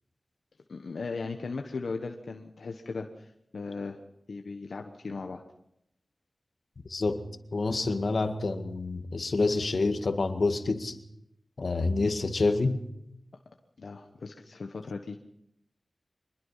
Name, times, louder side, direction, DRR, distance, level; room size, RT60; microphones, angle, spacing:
voice 1, 0.7-4.0 4.3-5.4 13.8-15.2, left 4 dB, 90° left, 4 dB, 1.2 m, -37 dB
voice 2, 6.9-7.2 7.5-11.0 11.6-12.8, left 3 dB, 70° left, 7 dB, 1.9 m, -27 dB
24.0 x 21.0 x 5.8 m, 0.80 s
wide cardioid pair, 70°, 0 cm